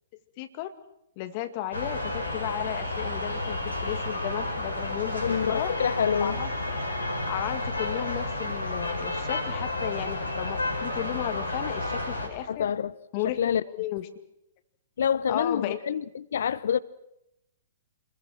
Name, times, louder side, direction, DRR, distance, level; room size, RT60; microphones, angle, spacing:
voice 1, 0.4-0.7 1.2-5.7 6.2-6.5 7.3-12.7 13.1-14.1 15.3-15.8, left 13 dB, 40° left, 2.1 m, -34 dB
sound 1, 1.7-12.3, left 2 dB, 90° left, 5.9 m, -31 dB
voice 2, 5.2-6.4 12.5-12.9 13.2-13.6 15.0-16.8, left 8 dB, 65° left, 0.9 m, -27 dB
28.0 x 21.5 x 6.1 m
figure-of-eight pair, 115°, 0 cm